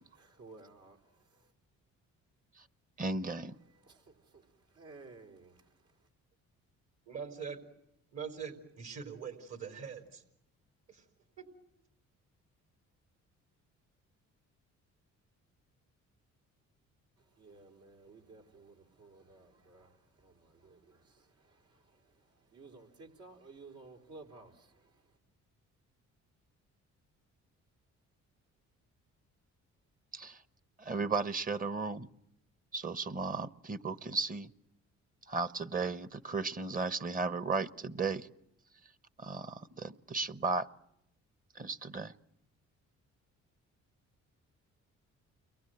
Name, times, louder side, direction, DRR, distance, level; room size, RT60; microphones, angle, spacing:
voice 1, 0.0-1.5 3.5-6.1 17.2-25.2, right 3 dB, 75° right, 4.8 m, -56 dB
voice 2, 3.0-3.5 30.1-30.4 30.8-32.1 32.7-34.5 35.3-38.3 39.2-40.7 41.5-42.1, right 4 dB, 30° right, 1.1 m, -35 dB
voice 3, 7.1-7.6 8.1-10.2 10.9-11.0 11.4-11.5, right 6 dB, 60° right, 4.2 m, -43 dB
30.0 x 23.0 x 8.1 m
cardioid pair, 90°, 30 cm